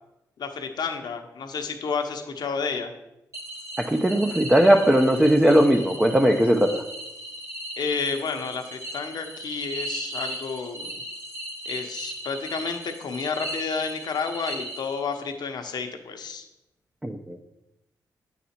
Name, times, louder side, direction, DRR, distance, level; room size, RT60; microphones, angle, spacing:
voice 1, 0.4-2.9 7.8-11.0 11.7-16.5, left 5 dB, 65° left, 5 dB, 0.9 m, -31 dB
sound 1, 3.3-15.3, right 1 dB, 40° right, 1.8 m, -37 dB
voice 2, 3.8-6.8 17.0-17.4, right 1 dB, 10° right, 3 dB, 0.7 m, -19 dB
8.2 x 4.1 x 4.4 m, 0.90 s
supercardioid pair, 55°, 8 cm